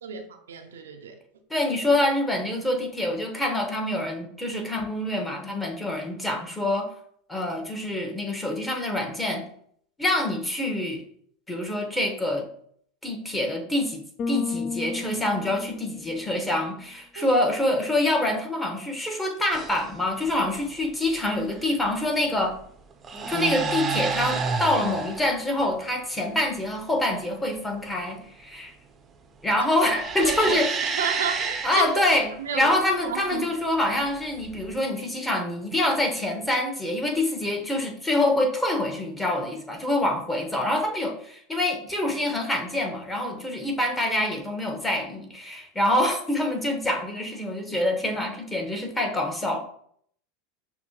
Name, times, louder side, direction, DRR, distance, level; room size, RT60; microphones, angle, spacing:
voice 1, 0.0-1.2 17.2-17.3 30.2-31.9 32.4-32.7 33.0-33.5, right 7 dB, 80° right, 0.5 m, -32 dB
voice 2, 1.5-6.9 7.3-9.4 10.0-11.0 11.5-12.5 13.0-22.6 23.3-28.7 29.4-30.7 31.6-49.7, left 1 dB, 10° left, 1.1 m, -26 dB
Bass guitar, 14.2-16.5, left 5 dB, 40° left, 0.4 m, -33 dB
sound 1, 19.5-19.9 21.5-21.9 22.9-25.4 29.5-32.1 34.0-34.7, right 5 dB, 30° right, 0.6 m, -30 dB
5.8 x 2.2 x 2.9 m
hypercardioid pair, 85°, 0 cm